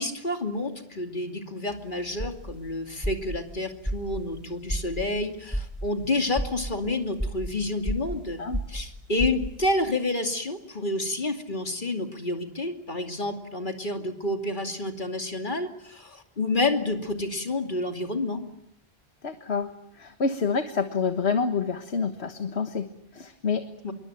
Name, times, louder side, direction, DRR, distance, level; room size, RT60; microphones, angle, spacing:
voice 1, 0.0-8.4 8.7-18.4 23.8-23.9, left 2 dB, 50° left, 5 dB, 2.9 m, -29 dB
sound 1, 1.7-9.8, right 1 dB, ahead, 3.7 m, -33 dB
voice 2, 19.2-19.7 20.0-23.6, left 5 dB, 85° left, 7 dB, 1.7 m, -28 dB
26.5 x 23.0 x 9.1 m, 0.74 s
omnidirectional pair, 1.1 m